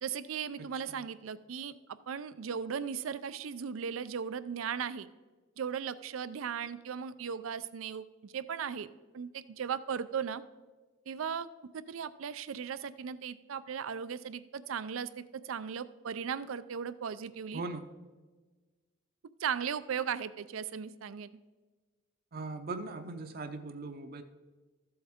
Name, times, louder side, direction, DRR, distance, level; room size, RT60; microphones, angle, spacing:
voice 1, 0.0-1.8 2.1-5.1 5.6-8.9 9.1-10.4 11.1-11.5 11.7-17.6 19.4-21.4, right 7 dB, 90° right, 15 dB, 0.4 m, -37 dB
voice 2, 0.6-1.1 17.5-17.8 22.3-24.2, right 3 dB, 50° right, 7 dB, 0.6 m, -40 dB
14.0 x 7.8 x 3.6 m, 1.3 s
head